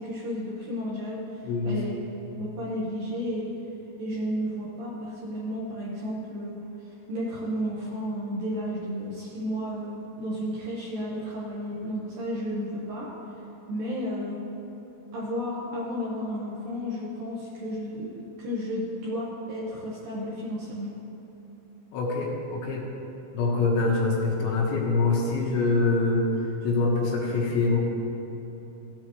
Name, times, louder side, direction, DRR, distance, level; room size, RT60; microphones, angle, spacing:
voice 1, 0.0-2.0 2.3-3.5 4.0-6.6 6.8-13.1 13.7-14.4 15.1-20.9, equal, 70° right, -6 dB, 2.1 m, -32 dB
voice 2, 1.5-1.8 21.9-22.9 23.3-27.8, left 3 dB, 75° left, -3 dB, 3.4 m, -25 dB
16.0 x 8.4 x 3.1 m, 3.0 s
omnidirectional pair, 5.7 m